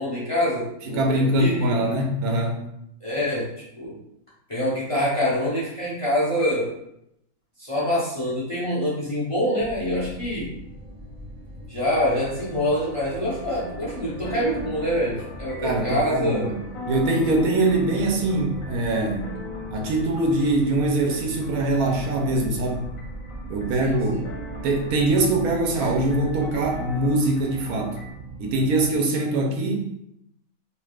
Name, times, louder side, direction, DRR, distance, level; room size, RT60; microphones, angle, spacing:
voice 1, 0.0-1.7 3.0-3.5 3.8-4.0 4.5-6.8 7.6-10.5 11.7-16.5 23.8-24.2, equal, 35° left, -7 dB, 0.6 m, -25 dB
voice 2, 0.8-2.6 15.6-19.3 19.7-22.9 23.5-24.2 24.6-28.0 28.4-30.0, right 2 dB, 85° right, 1 dB, 1.1 m, -23 dB
sound 1, 9.6-29.0, right 2 dB, 35° right, 0.6 m, -39 dB
sound 2, 12.1-28.1, left 3 dB, 70° left, 1.1 m, -41 dB
3.3 x 2.8 x 2.3 m, 0.78 s
omnidirectional pair, 1.5 m